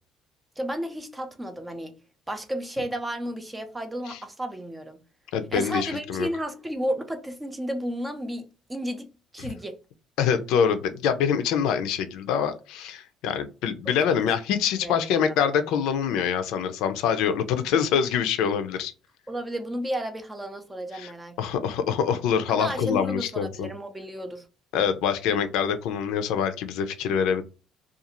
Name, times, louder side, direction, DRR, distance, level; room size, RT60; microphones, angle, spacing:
voice 1, 0.6-2.0 2.3-5.0 5.5-9.8 13.9-14.0 14.8-15.4 19.3-21.7 22.5-24.5, right 1 dB, 10° right, 0.4 m, -33 dB
voice 2, 5.3-6.3 9.4-9.5 10.2-18.9 20.9-21.1 21.4-23.7 24.7-27.4, left 7 dB, 80° left, 0.4 m, -25 dB
2.5 x 2.4 x 2.9 m
cardioid pair, 160°, 0 cm